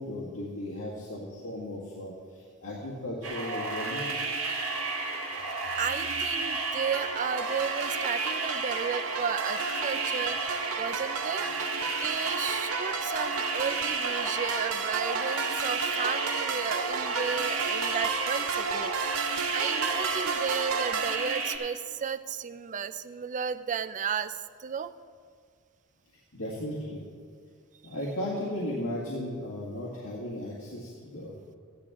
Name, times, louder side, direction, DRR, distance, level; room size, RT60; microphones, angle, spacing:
voice 1, 0.0-2.1 2.6-4.1 26.3-27.0 27.8-31.3, left 1 dB, 70° left, -7 dB, 1.9 m, -35 dB
sound 1, 3.2-21.6, right 3 dB, 70° right, 1.6 m, -32 dB
voice 2, 5.8-11.7 12.0-24.9, right 7 dB, 35° right, 13 dB, 0.4 m, -34 dB
sound 2, 6.9-21.2, right 6 dB, 85° right, 0.7 m, -34 dB
14.5 x 10.5 x 3.6 m, 2.1 s
head